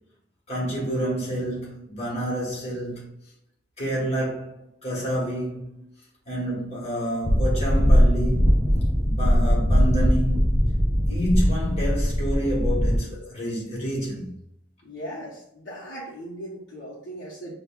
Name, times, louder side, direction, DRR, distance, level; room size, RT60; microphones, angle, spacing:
voice 1, 0.5-3.1 3.8-5.9 6.3-8.5 9.0-10.6 11.1-14.3, equal, 35° left, 1.3 m, -28 dB
sound 1, 7.2-13.0, equal, 15° left, 0.3 m, -20 dB
voice 2, 14.8-17.5, right 1 dB, 70° left, 0.8 m, -38 dB
4.9 x 2.3 x 2.3 m
head